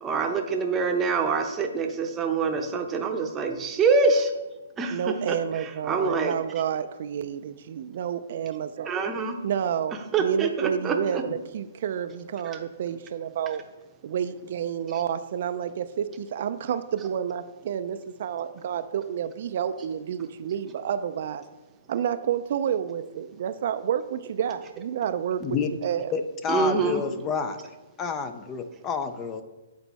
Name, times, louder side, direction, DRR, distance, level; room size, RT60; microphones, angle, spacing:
voice 1, 0.0-4.3 4.8-5.0 5.3-5.4 5.9-6.3 8.9-9.3 10.1-11.2 12.5-12.6 26.5-27.0, right 4 dB, 15° right, 4 dB, 0.8 m, -25 dB
voice 2, 4.9-8.9 9.4-13.6 14.0-21.4 21.9-25.4 25.8-26.1, right 8 dB, 55° right, 10 dB, 0.4 m, -29 dB
voice 3, 26.1-27.6 28.0-29.4, left 6 dB, 20° left, 9 dB, 0.4 m, -29 dB
7.9 x 4.3 x 4.1 m, 1.1 s
hypercardioid pair, 145°, 0 cm